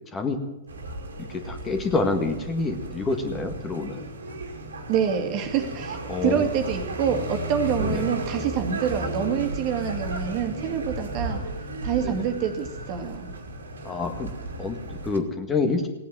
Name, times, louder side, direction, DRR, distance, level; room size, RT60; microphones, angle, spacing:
sound 1, 0.7-15.2, right 1 dB, 80° right, 2.3 m, -34 dB
voice 1, 1.2-4.1 6.1-6.5 7.8-8.1 12.0-12.2 13.8-14.3 14.6-15.9, left 3 dB, 20° left, 6 dB, 1.8 m, -27 dB
voice 2, 4.9-11.4 11.8-13.3, right 8 dB, 40° right, 5 dB, 2.1 m, -26 dB
17.0 x 9.1 x 9.0 m, 0.96 s
hypercardioid pair, 110°, 0 cm